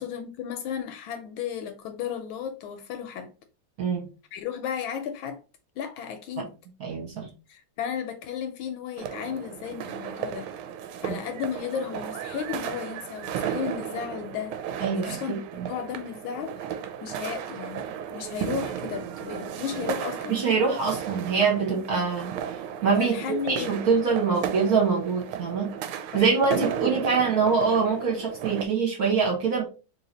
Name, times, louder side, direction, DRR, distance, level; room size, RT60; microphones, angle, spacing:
voice 1, 0.0-3.3 4.3-5.4 5.8-6.5 7.5-10.5 11.0-15.4 15.7-16.5 17.0-20.4 23.0-23.8 26.1-27.0, left 8 dB, 75° left, 1.3 m, -34 dB
voice 2, 6.8-7.3 11.0-11.2 14.8-15.7 20.3-22.4 22.8-23.2 23.5-25.7 26.1-29.7, right 5 dB, 50° right, 1.3 m, -24 dB
sound 1, 9.0-28.7, right 9 dB, 80° right, 1.4 m, -35 dB
3.2 x 2.9 x 3.8 m
omnidirectional pair, 2.4 m